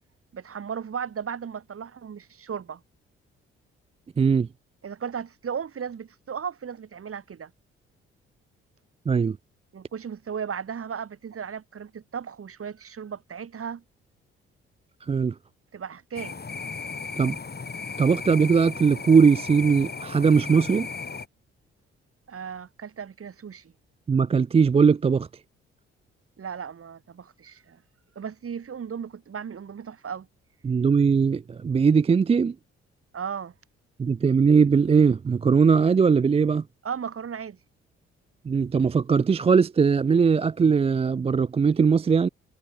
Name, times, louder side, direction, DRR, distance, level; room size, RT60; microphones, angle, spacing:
voice 1, 0.3-2.8 4.8-7.5 9.7-13.8 15.7-16.4 22.3-23.7 26.4-27.8 28.1-30.3 33.1-33.5 36.8-37.6, right 7 dB, 45° right, 3.3 m, -35 dB
voice 2, 4.2-4.5 9.1-9.4 15.1-15.3 17.2-17.4 18.0-20.9 24.1-25.3 30.6-32.6 34.0-36.6 38.5-42.3, right 5 dB, 20° right, 0.4 m, -20 dB
sound 1, 16.1-21.3, left 4 dB, 30° left, 3.0 m, -35 dB
hypercardioid pair, 45°, 31 cm